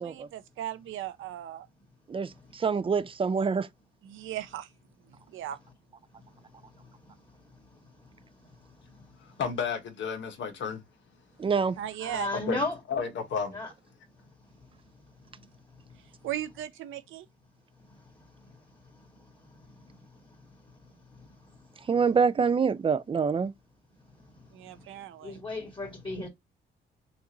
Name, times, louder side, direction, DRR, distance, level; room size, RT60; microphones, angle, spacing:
voice 1, 0.0-1.7 4.0-4.7 5.1-5.6 11.8-12.3 16.2-17.3 24.5-25.4, right 11 dB, 80° right, 0.7 m, -37 dB
voice 2, 2.1-3.7 11.4-11.8 21.9-23.5, right 5 dB, 25° right, 0.5 m, -26 dB
voice 3, 9.4-10.8 12.5-12.6 12.9-13.6, left 6 dB, 65° left, 1.4 m, -31 dB
voice 4, 12.0-12.8 13.5-13.7 19.9-20.0 25.2-26.3, left 2 dB, 25° left, 1.9 m, -33 dB
6.0 x 2.6 x 2.9 m
cardioid pair, 90°, 20 cm